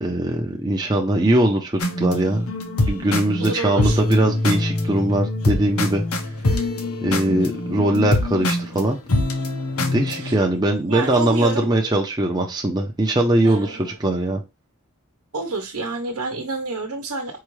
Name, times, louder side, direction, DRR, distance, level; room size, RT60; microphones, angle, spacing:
voice 1, 0.0-2.5 2.9-6.0 6.5-6.6 7.0-9.0 9.9-14.4, right 1 dB, 20° right, 1 dB, 0.5 m, -21 dB
sound 1, 1.8-10.3, left 2 dB, 75° left, 0.9 m, -24 dB
voice 2, 3.4-4.0 10.1-11.9 13.4-14.0 15.3-17.4, right 3 dB, 80° right, 2 dB, 0.9 m, -29 dB
4.7 x 2.6 x 3.1 m, 0.24 s
head